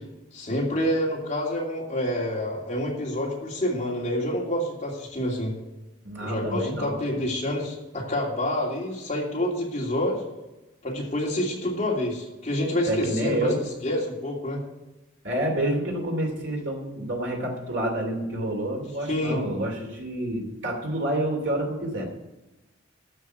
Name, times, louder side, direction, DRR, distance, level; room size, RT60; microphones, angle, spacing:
voice 1, 0.3-5.5 6.2-10.2 10.8-13.5 13.8-14.6 19.1-19.4, left 1 dB, 35° left, -3 dB, 2.8 m, -27 dB
voice 2, 6.0-7.0 12.9-13.6 15.2-22.0, right 1 dB, 60° right, 1 dB, 2.8 m, -28 dB
13.0 x 5.6 x 8.0 m, 1.0 s
head